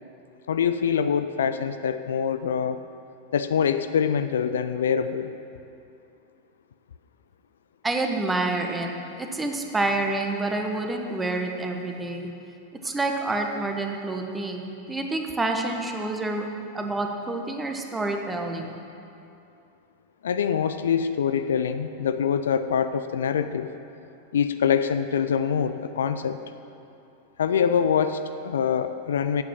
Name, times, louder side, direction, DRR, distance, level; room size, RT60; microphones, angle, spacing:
voice 1, 0.5-2.8 3.3-5.3 20.2-23.7 24.3-26.4 27.4-29.4, left 7 dB, 65° left, 11 dB, 0.4 m, -24 dB
voice 2, 7.8-8.9 9.2-12.3 12.8-16.5 16.7-18.8, right 2 dB, 10° right, 3 dB, 1.1 m, -28 dB
8.7 x 8.2 x 7.4 m, 2.7 s
figure-of-eight pair, 90°, 0 cm